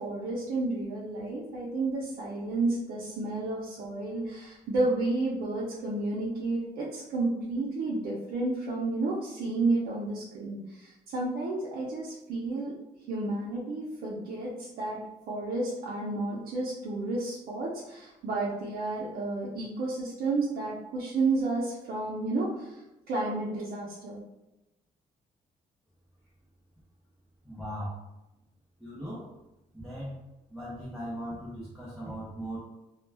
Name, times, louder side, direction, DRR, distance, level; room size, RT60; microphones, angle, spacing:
voice 1, 0.0-12.7 13.1-15.0 15.3-22.7 23.1-24.2, right 2 dB, 75° right, -6 dB, 0.6 m, -31 dB
voice 2, 27.4-27.9 28.8-29.3 29.7-30.2 30.5-32.6, equal, ahead, -9 dB, 0.5 m, -38 dB
2.2 x 2.1 x 3.2 m, 0.97 s
cardioid pair, 165°, 16 cm